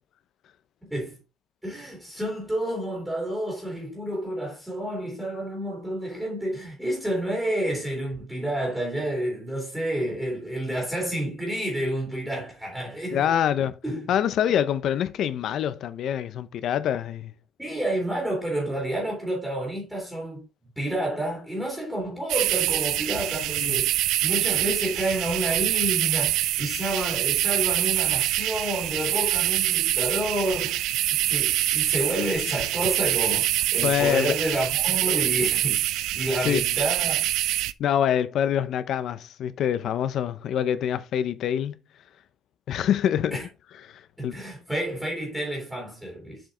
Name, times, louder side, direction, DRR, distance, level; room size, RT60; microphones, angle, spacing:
voice 1, 1.6-13.3 13.8-14.0 17.6-20.4 20.8-35.8 36.1-37.3 43.3-43.5 44.2-46.4, right 1 dB, 5° right, 2.7 m, -29 dB
voice 2, 13.1-13.8 14.1-17.3 23.6-23.8 33.8-34.3 36.4-36.6 37.8-41.8 42.7-43.4 43.9-44.4, left 9 dB, 55° left, 0.7 m, -25 dB
sound 1, 22.3-37.7, right 15 dB, 80° right, 0.4 m, -25 dB
7.4 x 5.1 x 3.8 m
cardioid pair, 165°, 0 cm